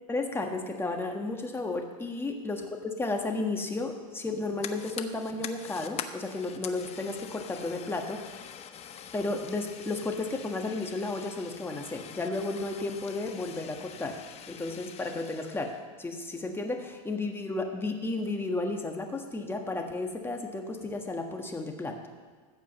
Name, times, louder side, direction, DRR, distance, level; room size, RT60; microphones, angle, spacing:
voice 1, 0.1-8.5 9.1-14.2 14.5-22.0, left 2 dB, 10° left, 3 dB, 1.4 m, -33 dB
Fire, 4.2-15.8, left 8 dB, 30° left, 0.8 m, -44 dB
14.5 x 5.2 x 7.7 m, 1.5 s
supercardioid pair, 120°, 20 cm